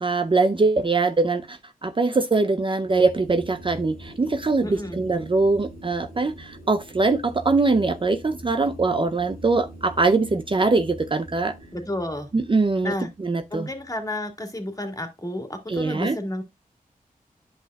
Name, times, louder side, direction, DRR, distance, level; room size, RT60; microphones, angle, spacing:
voice 1, 0.0-1.6 1.8-11.5 12.3-12.9 13.2-13.7 15.7-16.2, right 3 dB, 35° right, 0.6 m, -22 dB
sound 1, 2.8-14.1, equal, 80° right, 2.9 m, -44 dB
voice 2, 4.6-5.0 11.7-12.3 12.8-13.1 13.5-16.4, left 1 dB, 25° left, 2.0 m, -31 dB
10.5 x 5.7 x 2.3 m
wide cardioid pair, 65°, 15 cm